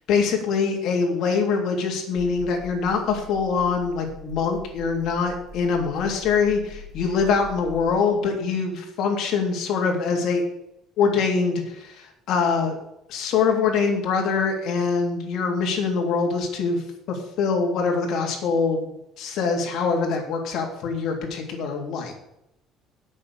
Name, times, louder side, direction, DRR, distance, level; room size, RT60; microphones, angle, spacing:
voice 1, 0.1-10.4 11.0-12.8 13.1-22.1, left 5 dB, 60° left, 1 dB, 3.3 m, -24 dB
sound 1, 2.2-7.9, left 4 dB, 90° left, 1.2 m, -42 dB
8.4 x 6.8 x 8.6 m, 0.85 s
cardioid pair, 120°, 0 cm